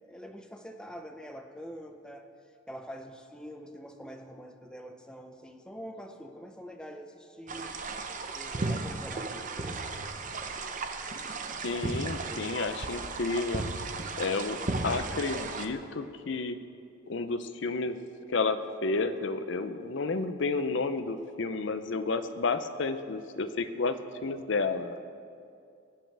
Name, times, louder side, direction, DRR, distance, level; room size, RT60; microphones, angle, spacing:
voice 1, 0.0-2.3 2.7-7.7 8.3-9.8 12.3-12.8, equal, 5° left, 4 dB, 0.7 m, -45 dB
sound 1, 7.5-15.7, right 3 dB, 40° right, 0.7 m, -35 dB
voice 2, 11.6-13.7 14.2-14.6 14.8-16.6 17.1-18.0 18.3-25.0, left 3 dB, 60° left, 10 dB, 0.6 m, -31 dB
22.0 x 8.7 x 3.4 m, 2.4 s
head